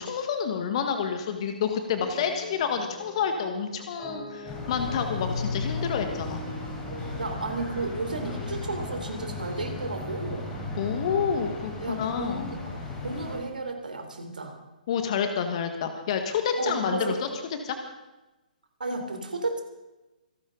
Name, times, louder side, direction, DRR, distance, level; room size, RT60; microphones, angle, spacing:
voice 1, 0.0-6.4 10.8-12.5 14.9-17.3 17.6-17.7, left 7 dB, 40° left, 6 dB, 1.6 m, -29 dB
sound 1, 2.0-11.1, right 1 dB, 15° right, 4.9 m, -44 dB
sound 2, 4.5-13.4, left 3 dB, 15° left, 4.3 m, -35 dB
voice 2, 7.2-10.6 11.8-14.6 16.6-17.2 18.8-19.6, right 3 dB, 70° right, 5 dB, 3.6 m, -33 dB
25.5 x 12.0 x 3.9 m, 1.0 s
figure-of-eight pair, 130°, 5 cm